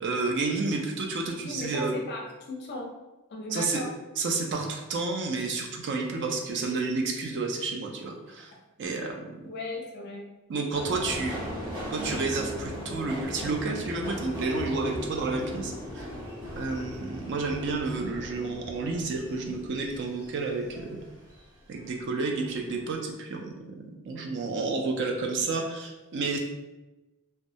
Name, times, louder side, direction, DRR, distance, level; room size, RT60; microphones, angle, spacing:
voice 1, 0.0-1.9 3.5-3.8 4.2-8.5 8.8-9.4 10.5-11.4 11.9-16.1 16.6-21.0 21.7-26.4, right 3 dB, 55° right, 2 dB, 0.4 m, -30 dB
voice 2, 1.4-2.9 3.3-3.9 9.4-10.2, left 1 dB, 50° left, 0 dB, 0.5 m, -36 dB
Subway metro underground, 10.7-21.4 21.8-22.5 22.8-22.9, left 1 dB, 80° right, 0.9 m, -38 dB
2.2 x 2.0 x 2.7 m, 1.1 s
head